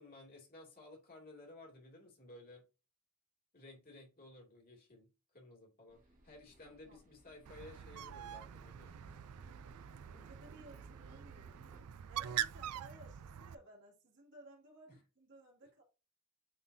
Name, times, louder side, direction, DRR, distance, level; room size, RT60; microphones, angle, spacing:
voice 1, 0.0-2.6 3.5-9.0 14.9-15.0, left 2 dB, 40° left, 2.5 m, -56 dB
sound 1, 5.9-11.8, right 1 dB, 40° right, 1.7 m, -63 dB
voice 2, 6.6-7.0 10.1-15.8, right 1 dB, 55° right, 2.4 m, -59 dB
Bird, 7.5-13.6, right 10 dB, 80° right, 0.4 m, -44 dB
9.1 x 3.9 x 2.7 m
head